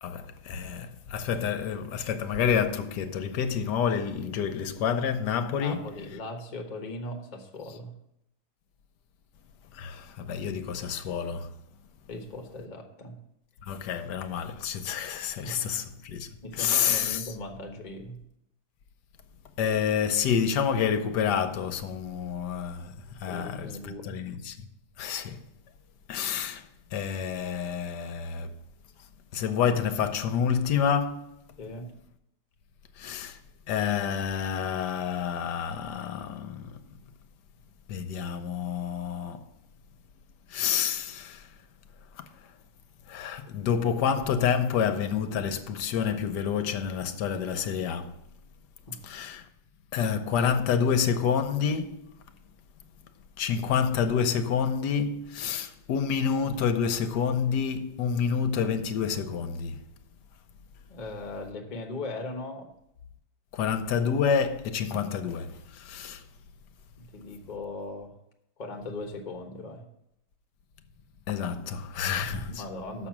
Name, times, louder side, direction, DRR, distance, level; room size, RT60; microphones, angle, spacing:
voice 1, 0.0-5.8 9.7-11.5 13.7-16.3 16.6-17.3 19.6-24.6 25.0-25.4 26.1-26.7 26.9-28.5 29.3-31.3 33.0-33.4 33.7-36.8 37.9-39.4 40.5-41.5 43.1-48.1 49.0-49.4 49.9-52.0 53.4-59.8 63.5-66.2 71.3-72.6, left 7 dB, 70° left, 1.2 m, -28 dB
voice 2, 5.6-7.9 12.1-13.2 15.4-15.7 16.4-18.2 23.3-24.2 31.6-31.9 48.9-49.0 60.9-62.7 67.0-68.1 68.6-69.9 72.2-73.1, left 2 dB, 30° left, 0.9 m, -39 dB
6.6 x 5.9 x 7.2 m
omnidirectional pair, 2.1 m